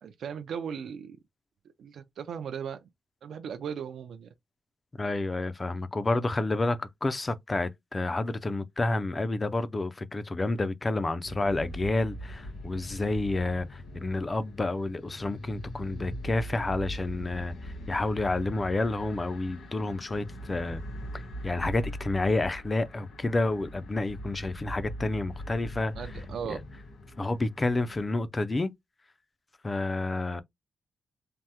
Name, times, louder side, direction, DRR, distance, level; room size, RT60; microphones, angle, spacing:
voice 1, 0.0-1.2 1.8-2.8 3.2-4.3 26.0-26.6, right 7 dB, 70° right, 0.4 m, -37 dB
voice 2, 5.0-20.8 21.1-26.1 26.5-26.6 27.2-28.7 29.6-30.4, left 2 dB, 20° left, 0.3 m, -29 dB
sound 1, 11.2-28.2, equal, 70° left, 1.3 m, -41 dB
3.4 x 2.0 x 2.7 m
wide cardioid pair, 155°, 0 cm